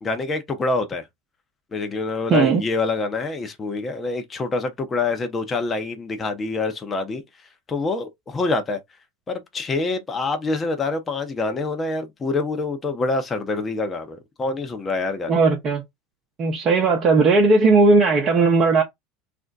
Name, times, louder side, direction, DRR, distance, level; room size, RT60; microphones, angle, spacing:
voice 1, 0.0-1.1 1.7-7.2 7.7-8.8 9.3-15.4, left 3 dB, 25° left, 0.7 m, -26 dB
voice 2, 2.3-2.6 15.3-15.8 16.4-18.8, right 3 dB, 40° right, 0.8 m, -17 dB
2.6 x 2.1 x 3.8 m
hypercardioid pair, 85°, 0 cm